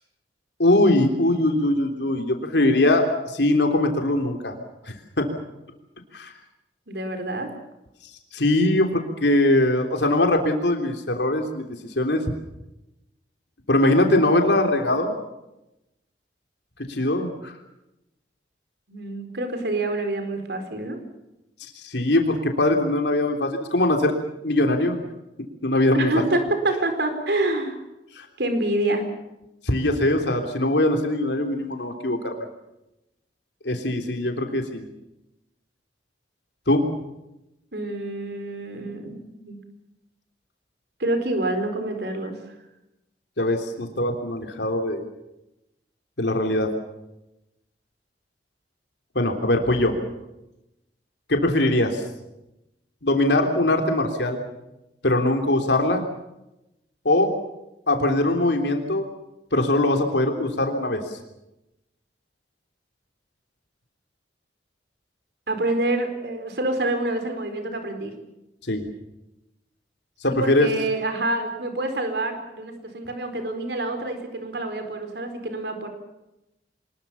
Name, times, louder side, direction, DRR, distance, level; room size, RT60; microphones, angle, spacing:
voice 1, 0.6-4.5 4.9-5.3 6.1-6.3 8.3-11.7 11.9-12.2 13.7-15.2 16.9-17.5 21.8-24.2 24.4-25.0 25.6-26.2 28.2-28.3 29.6-32.4 33.6-34.9 36.7-36.9 43.4-45.0 46.2-46.7 49.1-50.0 51.3-52.0 53.0-54.4 55.0-56.0 57.0-57.3 57.9-59.1 59.5-61.0 68.7-68.8 70.2-70.7, left 1 dB, 75° left, 4 dB, 3.3 m, -21 dB
voice 2, 6.9-7.5 18.9-21.0 25.9-27.8 28.4-29.0 37.7-39.6 41.0-42.4 65.5-68.1 70.3-75.9, right 2 dB, 65° right, 6 dB, 4.4 m, -27 dB
25.5 x 21.0 x 7.1 m, 0.91 s
head